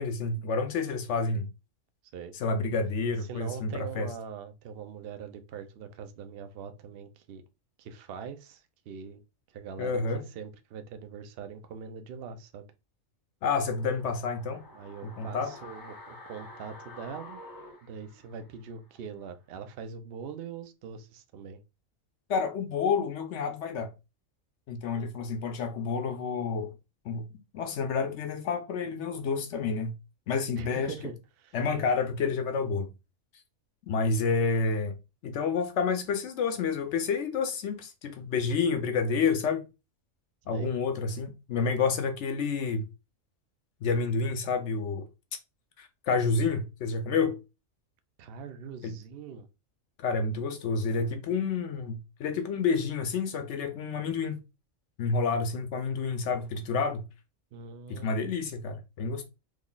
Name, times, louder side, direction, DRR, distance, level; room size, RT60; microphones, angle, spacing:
voice 1, 0.0-1.5 2.4-4.1 9.8-10.2 13.4-14.6 15.0-15.5 22.3-23.9 24.7-26.7 27.1-27.2 27.5-29.9 30.3-30.9 31.5-32.9 33.9-34.9 35.2-39.7 40.5-42.8 43.8-45.0 45.8-47.4 48.8-48.9 50.0-54.4 55.0-57.0 57.9-59.2, left 4 dB, 65° left, 0.8 m, -29 dB
voice 2, 3.2-7.4 7.8-9.2 9.5-12.7 14.7-17.4 17.8-21.6 30.6-31.6 40.5-40.7 48.2-49.5 57.5-58.3, right 6 dB, 60° right, 0.6 m, -42 dB
sound 1, 13.5-18.7 19.0-19.1, left 2 dB, 35° left, 0.3 m, -48 dB
3.1 x 2.3 x 3.7 m
omnidirectional pair, 1.4 m